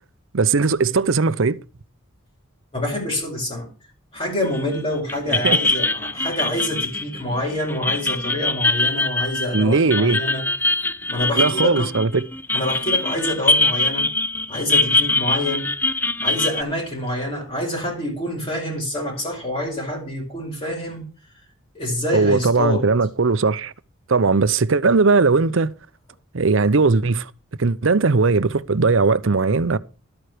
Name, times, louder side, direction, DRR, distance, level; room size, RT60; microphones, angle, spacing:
voice 1, 0.3-1.6 5.3-5.6 9.5-10.2 11.4-12.2 22.1-23.7 24.1-25.7 26.3-27.3 27.6-29.8, right 4 dB, 65° right, 0.7 m, -18 dB
voice 2, 2.7-3.7 4.1-10.5 11.1-11.9 12.5-14.1 14.5-15.7 16.2-21.0 21.7-22.8, left 1 dB, 25° left, 4.8 m, -26 dB
sound 1, 4.5-4.8 5.1-16.6, left 2 dB, 10° left, 0.5 m, -23 dB
12.5 x 8.9 x 4.9 m
head